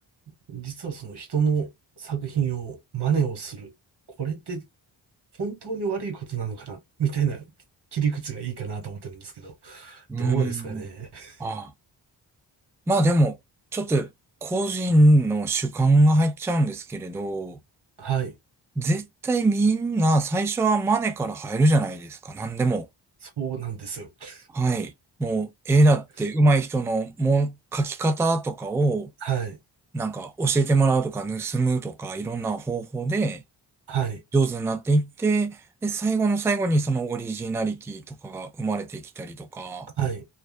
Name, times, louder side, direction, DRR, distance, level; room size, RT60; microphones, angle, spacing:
voice 1, 0.5-1.7 2.0-3.7 4.2-4.6 5.4-7.4 7.9-11.4 18.0-18.3 23.2-24.5 29.2-29.6 33.9-34.2 40.0-40.2, right 7 dB, 60° right, 1.4 m, -29 dB
voice 2, 10.1-10.8 11.4-11.7 12.9-13.4 13.7-14.1 14.4-17.6 18.8-22.9 24.5-24.9 25.2-29.1 29.9-33.4 34.3-39.9, right 2 dB, 5° right, 0.3 m, -23 dB
2.6 x 2.2 x 2.2 m
cardioid pair, 60°, 45 cm